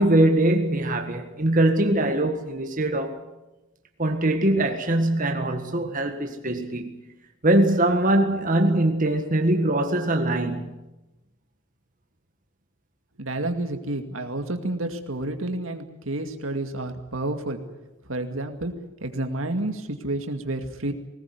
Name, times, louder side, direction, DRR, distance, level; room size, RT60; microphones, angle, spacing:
voice 1, 0.0-3.2 4.0-7.0 7.4-10.7, right 1 dB, 40° right, 1.7 m, -22 dB
voice 2, 13.2-17.6 18.1-18.7 19.0-20.9, right 2 dB, 80° right, 2.3 m, -30 dB
20.5 x 19.0 x 9.5 m
head